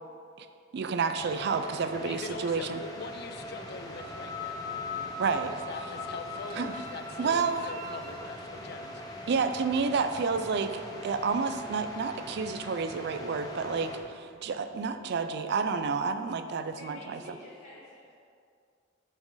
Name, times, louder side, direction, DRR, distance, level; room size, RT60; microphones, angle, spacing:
voice 1, 0.7-2.8 5.2-5.6 6.6-6.7 7.2-7.7 9.3-17.2, right 5 dB, 55° right, 10 dB, 0.3 m, -30 dB
sound 1, 1.2-14.0, left 1 dB, 20° left, 0.7 m, -42 dB
voice 2, 2.0-4.7 5.5-9.0, left 4 dB, 50° left, 8 dB, 0.4 m, -43 dB
Sawing, 3.0-15.0, right 1 dB, 85° right, 1.1 m, -55 dB
Wind instrument woodwind instrument, 3.9-8.2, left 4 dB, 20° right, 1.6 m, -41 dB
voice 3, 16.8-18.1, left 1 dB, 35° left, -9 dB, 1.1 m, -48 dB
6.2 x 4.4 x 4.8 m, 2.2 s
head